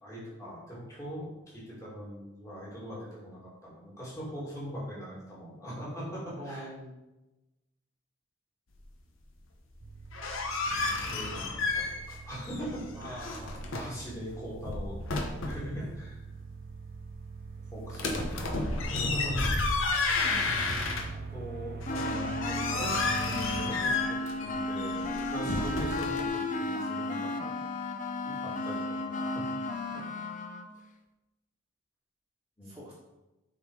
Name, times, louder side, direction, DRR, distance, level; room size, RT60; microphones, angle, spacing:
voice 1, 0.0-6.7 11.0-13.4 13.7-16.2 17.7-19.6 21.1-27.3 28.2-29.8 32.6-32.7, equal, 15° left, -6 dB, 2.4 m, -41 dB
voice 2, 6.4-6.9 12.9-14.0 15.8-15.9 20.2-20.6 25.6-25.7 27.4-27.6 29.9-30.1 32.6-32.9, equal, 10° right, -10 dB, 1.4 m, -46 dB
sound 1, 9.8-23.7, right 4 dB, 45° right, 0.5 m, -43 dB
sound 2, 9.9-12.2 12.4-14.0 14.5-15.7 17.9-21.4 21.8-26.2, left 3 dB, 80° left, 1.0 m, -32 dB
sound 3, 21.9-30.7, left 2 dB, 35° left, 0.5 m, -34 dB
7.5 x 4.0 x 4.8 m, 1.0 s
head